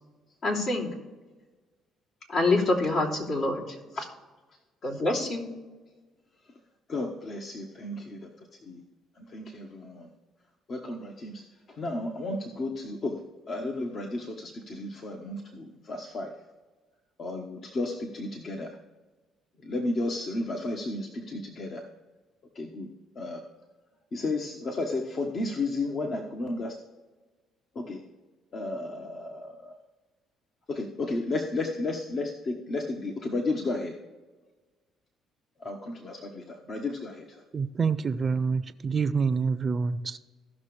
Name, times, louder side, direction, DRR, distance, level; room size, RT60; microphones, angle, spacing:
voice 1, 0.4-0.9 2.3-4.1 4.8-5.5, left 2 dB, 70° left, -3 dB, 2.9 m, -26 dB
voice 2, 6.9-8.3 8.7-8.8 9.2-10.1 10.7-13.2 13.5-16.3 17.2-18.8 19.6-21.8 22.5-23.4 24.1-26.8 27.7-28.0 28.5-29.8 30.7-33.9 35.6-37.4, left 2 dB, 50° left, 2 dB, 1.2 m, -33 dB
voice 3, 37.5-40.2, right 5 dB, 40° right, 14 dB, 0.5 m, -27 dB
16.0 x 6.1 x 3.3 m, 1.3 s
cardioid pair, 80°, 0 cm